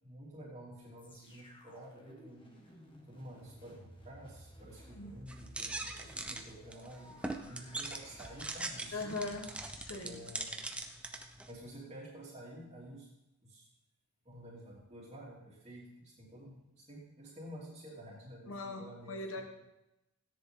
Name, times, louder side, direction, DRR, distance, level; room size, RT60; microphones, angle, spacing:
voice 1, 0.0-2.4 3.1-9.3 10.0-10.6 11.5-13.1 13.4-13.7 14.2-19.4, right 1 dB, 30° right, -6 dB, 3.4 m, -50 dB
sound 1, 1.0-11.0 11.6-11.7, equal, 25° left, 1.9 m, -57 dB
sound 2, 5.3-11.5, right 2 dB, 5° right, 0.8 m, -42 dB
voice 2, 8.9-10.2 18.5-19.4, left 3 dB, 65° left, 4 dB, 1.4 m, -40 dB
17.0 x 10.0 x 3.9 m, 0.93 s
head